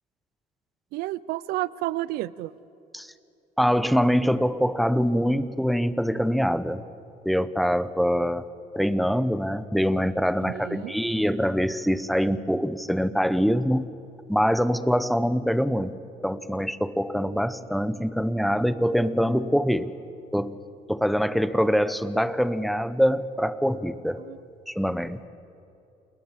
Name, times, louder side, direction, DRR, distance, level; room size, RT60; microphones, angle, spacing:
voice 1, 0.9-2.5 10.4-10.9 24.2-24.4, right 16 dB, 80° right, 20 dB, 0.7 m, -31 dB
voice 2, 3.6-6.8 7.2-8.5 8.7-13.9 14.3-15.9 16.2-19.9 20.3-20.6 20.9-24.2 24.7-25.3, equal, ahead, 14 dB, 1.0 m, -24 dB
29.0 x 19.5 x 7.5 m, 2.8 s
cardioid pair, 95°, 16 cm